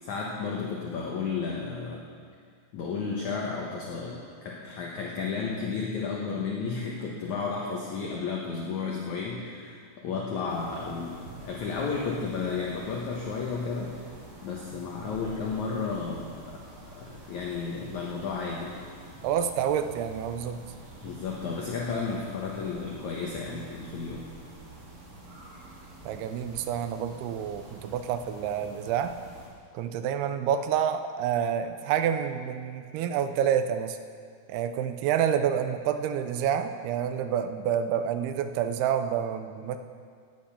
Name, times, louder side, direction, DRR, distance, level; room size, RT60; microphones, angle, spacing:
voice 1, 0.0-2.0 2.7-14.0 14.4-16.6 17.0-18.8 21.0-24.2, left 5 dB, 65° left, -2 dB, 2.1 m, -33 dB
sound 1, 10.5-29.5, right 1 dB, 55° right, 4.0 m, -48 dB
voice 2, 19.2-20.6 26.0-29.1 29.7-34.0 34.5-39.8, right 9 dB, 80° right, 8 dB, 2.6 m, -28 dB
15.5 x 9.5 x 5.7 m, 2.1 s
omnidirectional pair, 4.6 m